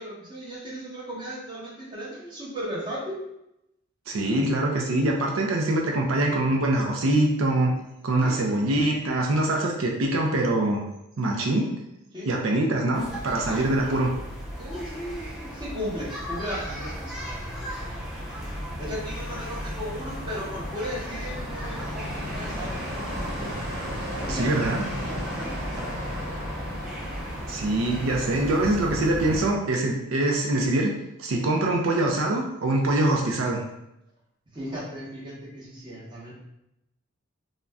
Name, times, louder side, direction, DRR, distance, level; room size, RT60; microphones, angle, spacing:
voice 1, 0.0-3.2 8.2-8.7 12.1-12.7 14.6-18.0 18.8-22.8 24.2-24.6 25.1-26.1 34.5-36.3, equal, 20° right, -7 dB, 0.9 m, -36 dB
voice 2, 4.1-7.7 8.0-10.8 11.2-11.7 12.3-14.1 24.3-24.8 27.5-30.9 31.2-33.6, right 2 dB, 85° right, 0 dB, 0.4 m, -24 dB
sound 1, 12.9-29.5, equal, ahead, 0.4 m, -36 dB
sound 2, 16.6-29.4, left 1 dB, 50° right, 1.3 m, -37 dB
2.5 x 2.1 x 3.4 m, 0.85 s
head